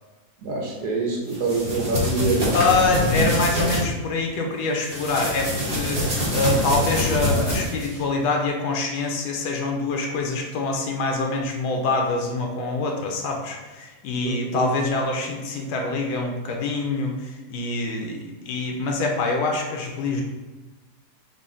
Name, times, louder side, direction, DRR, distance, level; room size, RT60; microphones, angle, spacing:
voice 1, 0.4-2.7 14.2-14.7, right 3 dB, 80° right, -2 dB, 1.4 m, -25 dB
sound 1, 1.3-3.8 4.8-8.0, left 1 dB, 35° right, 0.7 m, -25 dB
voice 2, 2.5-20.2, left 3 dB, 80° left, 1 dB, 1.2 m, -25 dB
4.0 x 2.1 x 3.7 m, 1.2 s
omnidirectional pair, 1.7 m